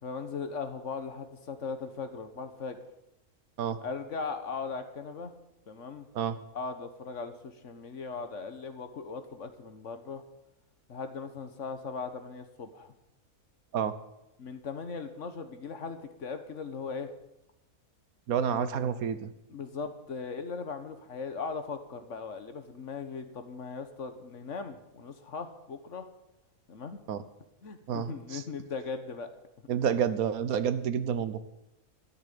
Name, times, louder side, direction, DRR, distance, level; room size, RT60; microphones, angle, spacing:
voice 1, 0.0-2.8 3.8-5.3 5.7-6.1 6.5-10.2 10.9-12.9 14.4-17.1 18.3-19.0 19.5-26.1 26.7-27.0 27.6-29.3, left 5 dB, 55° left, 8 dB, 1.5 m, -39 dB
voice 2, 18.3-19.3 27.1-27.2 27.9-28.4 29.7-31.4, right 8 dB, 70° right, 13 dB, 1.3 m, -29 dB
12.5 x 6.7 x 10.0 m, 0.88 s
omnidirectional pair, 1.6 m